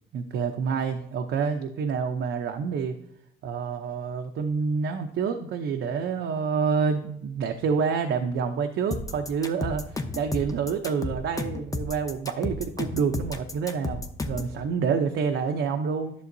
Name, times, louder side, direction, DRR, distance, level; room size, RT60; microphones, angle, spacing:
voice 1, 0.1-3.0 3.4-16.1, right 6 dB, 75° right, 5 dB, 0.7 m, -28 dB
sound 1, 8.9-14.5, left 2 dB, 15° left, 0.9 m, -32 dB
11.5 x 6.9 x 2.7 m, 0.71 s
cardioid pair, 90°, 20 cm